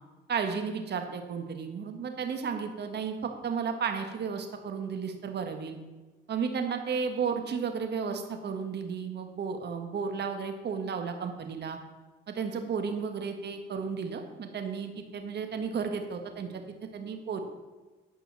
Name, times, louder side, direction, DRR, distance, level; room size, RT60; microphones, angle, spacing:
voice 1, 0.3-5.8 6.3-11.8 12.3-16.5 16.9-17.4, right 6 dB, 55° right, 6 dB, 1.5 m, -33 dB
10.0 x 5.5 x 7.1 m, 1.3 s
cardioid pair, 90°, 20 cm